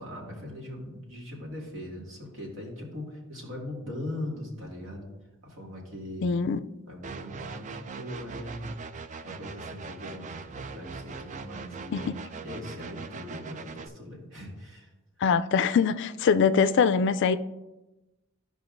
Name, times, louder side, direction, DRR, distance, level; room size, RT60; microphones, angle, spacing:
voice 1, 0.0-5.1 5.4-6.3 6.9-8.7 9.2-12.1 12.4-14.9, left 1 dB, 65° right, 2.1 m, -40 dB
voice 2, 6.2-6.6 12.1-12.2 15.2-17.4, left 6 dB, 60° left, 0.3 m, -23 dB
sound 1, 7.0-13.9, right 5 dB, 35° right, 0.3 m, -41 dB
13.5 x 5.0 x 2.6 m
head